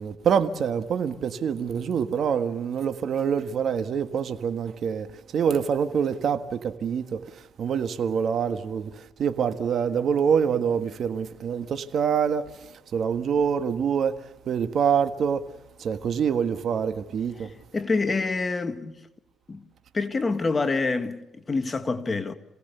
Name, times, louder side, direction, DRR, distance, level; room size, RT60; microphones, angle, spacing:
voice 1, 0.0-15.4 15.8-17.5, right 7 dB, 60° right, 1.5 m, -26 dB
voice 2, 17.4-19.1 19.5-19.6 19.9-22.3, left 3 dB, 30° left, 1.6 m, -27 dB
27.5 x 18.0 x 6.8 m
cardioid pair, 90°, 0 cm